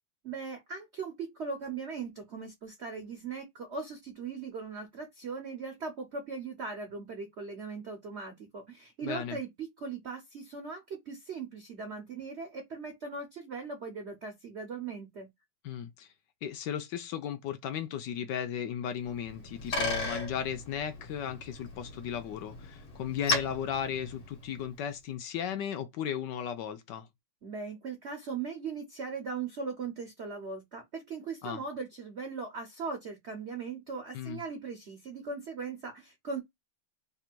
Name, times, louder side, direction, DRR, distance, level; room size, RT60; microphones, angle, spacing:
voice 1, 0.2-15.3 27.4-36.4, right 4 dB, 55° right, 0.7 m, -39 dB
voice 2, 9.0-9.4 15.6-16.1 16.4-27.1 31.4-31.6 34.1-34.4, left 9 dB, 75° left, 1.1 m, -36 dB
Bicycle, 19.1-24.8, left 2 dB, 55° left, 1.3 m, -36 dB
3.3 x 2.5 x 4.3 m
omnidirectional pair, 2.2 m